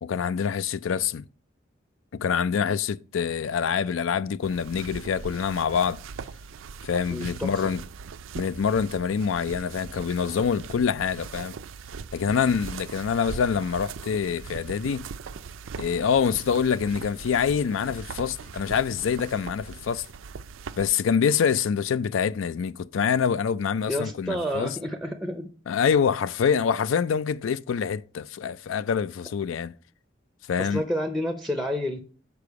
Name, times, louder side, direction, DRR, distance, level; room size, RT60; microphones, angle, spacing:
voice 1, 0.0-1.3 2.1-6.0 6.8-7.8 8.4-11.5 12.1-15.1 15.8-20.0 20.8-24.8 25.7-29.7 30.5-30.8, left 7 dB, 85° left, 0.4 m, -25 dB
sound 1, 4.4-20.9, right 5 dB, 85° right, 0.4 m, -40 dB
voice 2, 7.1-7.6 23.9-25.5 30.6-32.0, equal, ahead, 0.5 m, -29 dB
6.8 x 5.0 x 4.7 m
head